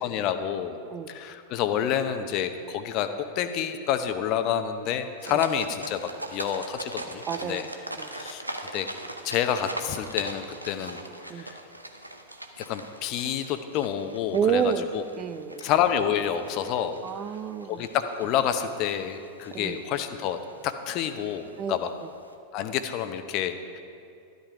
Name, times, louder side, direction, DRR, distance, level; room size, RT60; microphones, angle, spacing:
voice 1, 0.0-0.8 1.1-7.7 8.1-8.4 8.7-8.9 9.2-11.0 11.3-11.6 12.6-15.0 15.6-17.0 17.7-20.4 20.6-21.9 22.5-23.8, left 9 dB, 40° left, 9 dB, 0.9 m, -28 dB
sound 1, 5.2-22.3, right 1 dB, 85° right, 0.9 m, -41 dB
voice 2, 7.3-7.7 8.0-8.1 11.3-11.5 14.3-14.9 15.2-15.7 17.0-17.9 19.5-19.8 21.6-21.8, right 7 dB, 30° right, 12 dB, 0.6 m, -29 dB
13.0 x 12.0 x 4.8 m, 2.6 s
figure-of-eight pair, 90°, 0 cm